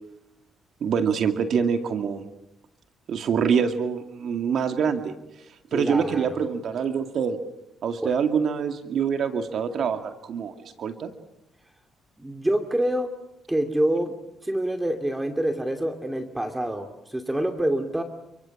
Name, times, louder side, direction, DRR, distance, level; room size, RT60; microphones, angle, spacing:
voice 1, 0.8-2.2 3.1-5.1 5.7-7.4 7.8-11.1, right 6 dB, 65° right, 7 dB, 2.2 m, -25 dB
voice 2, 5.7-6.4 8.0-8.1 12.2-13.1 13.5-14.1 14.4-18.0, right 1 dB, 10° right, 6 dB, 2.5 m, -26 dB
29.0 x 25.0 x 7.2 m, 0.84 s
cardioid pair, 90°, 0 cm